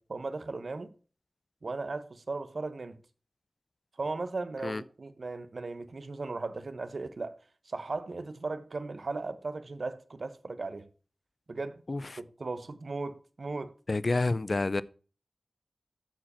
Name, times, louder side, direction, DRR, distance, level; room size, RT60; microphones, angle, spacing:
voice 1, 0.1-0.9 1.6-3.0 4.0-7.3 7.7-10.9 11.5-11.8 12.2-13.7, right 3 dB, 65° right, 1.1 m, -37 dB
voice 2, 13.9-14.8, left 3 dB, 55° left, 0.5 m, -28 dB
13.5 x 4.9 x 4.3 m
cardioid pair, 50°, 0 cm